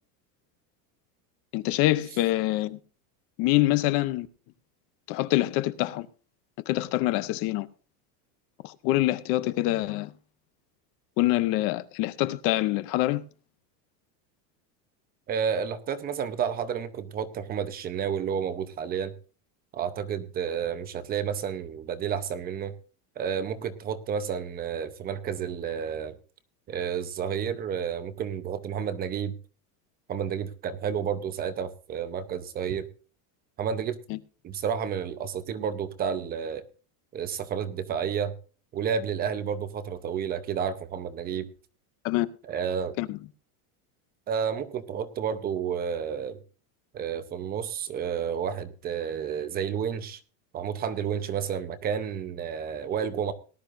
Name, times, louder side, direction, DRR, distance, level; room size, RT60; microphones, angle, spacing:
voice 1, 1.5-2.8 3.4-4.3 5.1-6.1 6.7-7.7 8.6-10.1 11.2-13.2 34.1-34.2 42.0-42.3 43.0-43.2, left 17 dB, 30° left, 0.5 m, -25 dB
voice 2, 15.3-19.1 19.7-22.7 23.2-26.2 26.7-29.3 30.1-32.9 33.6-34.0 34.4-36.6 37.1-38.3 38.7-41.5 42.4-43.0 44.3-46.4 46.9-50.2 50.5-53.3, right 7 dB, 20° right, 0.7 m, -31 dB
18.5 x 11.5 x 2.5 m
supercardioid pair, 175°, 45 cm